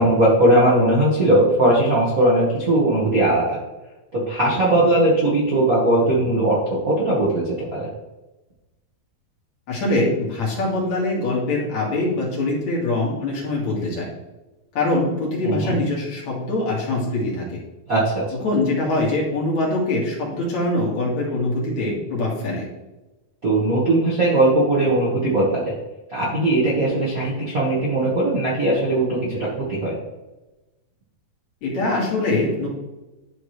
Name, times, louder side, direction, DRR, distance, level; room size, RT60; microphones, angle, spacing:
voice 1, 0.0-3.6 4.1-7.9 15.4-15.8 17.9-18.2 23.4-25.7 26.1-30.0, right 1 dB, 85° right, -7 dB, 0.7 m, -19 dB
voice 2, 9.7-14.1 14.7-17.6 18.4-22.7 31.6-32.7, left 2 dB, 50° left, -4 dB, 3.0 m, -23 dB
11.5 x 4.3 x 3.2 m, 1.1 s
omnidirectional pair, 4.3 m